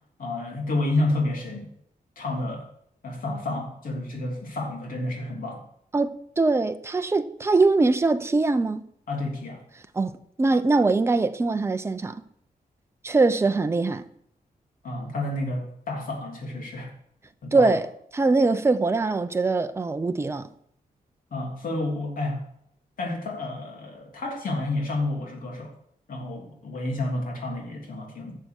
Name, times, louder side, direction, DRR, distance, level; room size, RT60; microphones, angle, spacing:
voice 1, 0.2-1.7 2.2-2.6 3.0-5.6 9.1-9.6 14.8-16.9 17.4-17.7 21.3-22.4 23.0-25.7 26.1-28.4, left 2 dB, 65° left, 3.2 m, -30 dB
voice 2, 5.9-8.8 9.9-10.1 10.4-12.2 13.0-14.0 17.5-17.9 18.1-20.5, right 3 dB, 15° right, 0.6 m, -22 dB
11.5 x 6.7 x 6.4 m
wide cardioid pair, 165°, 15 cm